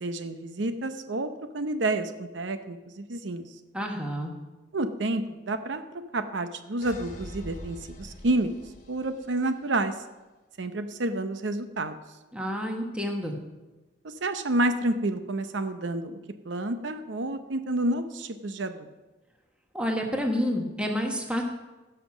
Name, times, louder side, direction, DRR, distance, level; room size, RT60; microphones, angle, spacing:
voice 1, 0.0-3.5 4.7-5.8 6.1-8.5 8.9-9.9 10.6-12.0 14.0-16.2 16.4-18.9, right 2 dB, 85° right, 9 dB, 0.8 m, -29 dB
voice 2, 3.7-4.3 12.3-13.4 19.7-21.4, equal, 5° right, 1 dB, 1.4 m, -29 dB
sound 1, 6.8-9.7, equal, 40° left, 1.5 m, -44 dB
16.0 x 5.9 x 6.1 m, 1.1 s
head